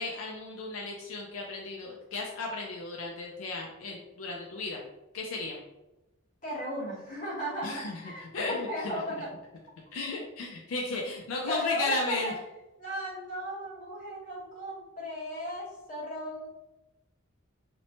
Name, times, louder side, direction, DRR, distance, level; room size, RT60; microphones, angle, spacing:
voice 1, 0.0-4.8 5.1-5.6 7.6-9.0 9.9-12.3, left 3 dB, 80° left, 0 dB, 0.4 m, -35 dB
voice 2, 6.4-9.3 11.5-12.3 12.8-16.5, equal, 40° left, -6 dB, 1.0 m, -35 dB
2.9 x 2.1 x 2.7 m, 0.94 s
head